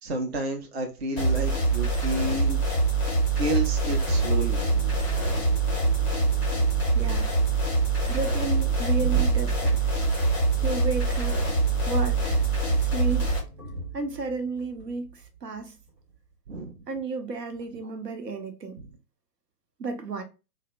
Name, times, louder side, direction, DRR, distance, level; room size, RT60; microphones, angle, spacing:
voice 1, 0.0-2.6 3.4-5.0 16.5-16.7, right 2 dB, 45° right, 0.5 m, -31 dB
sound 1, 1.2-13.4, right 3 dB, 10° left, 0.4 m, -24 dB
sound 2, 4.1-15.6 15.9-16.1, right 6 dB, 90° right, 1.1 m, -37 dB
voice 2, 6.9-7.7 8.1-9.8 10.6-11.4 11.9-12.4 12.7-13.4 13.9-15.8 16.9-18.8 19.8-20.2, right 3 dB, 75° right, 0.8 m, -33 dB
2.7 x 2.0 x 2.6 m
figure-of-eight pair, 130°, 49 cm